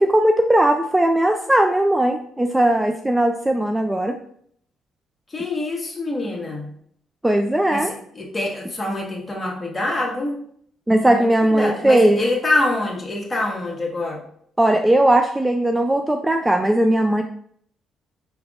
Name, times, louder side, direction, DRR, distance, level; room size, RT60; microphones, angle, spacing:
voice 1, 0.0-4.2 7.2-7.9 10.9-12.2 14.6-17.2, right 1 dB, 10° right, 5 dB, 0.3 m, -18 dB
voice 2, 5.3-6.7 7.7-7.8 8.1-10.4 11.0-11.3 11.5-14.2, left 2 dB, 25° left, -1 dB, 1.3 m, -25 dB
5.0 x 3.3 x 2.4 m, 0.64 s
cardioid pair, 85°, 0 cm